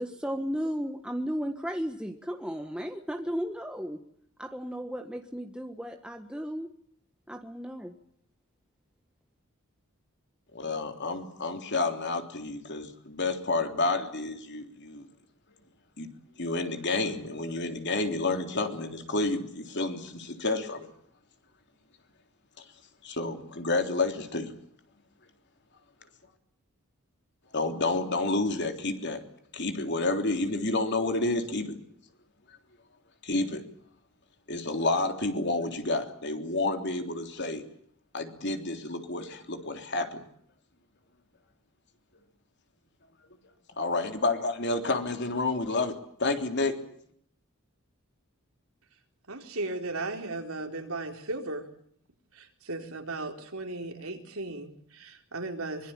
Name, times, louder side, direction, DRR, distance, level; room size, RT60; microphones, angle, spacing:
voice 1, 0.0-4.0 4.4-6.7 7.3-7.9, equal, 5° right, 5 dB, 1.3 m, -34 dB
voice 2, 10.5-15.1 16.0-16.1 16.4-20.9 23.0-24.5 27.5-29.2 29.5-31.8 33.2-33.6 34.5-37.6 38.1-40.2 43.8-46.8, left 2 dB, 50° left, 6 dB, 3.4 m, -30 dB
voice 3, 49.3-51.7 52.3-55.9, right 2 dB, 75° right, 4 dB, 4.1 m, -36 dB
24.0 x 22.5 x 8.9 m, 0.65 s
head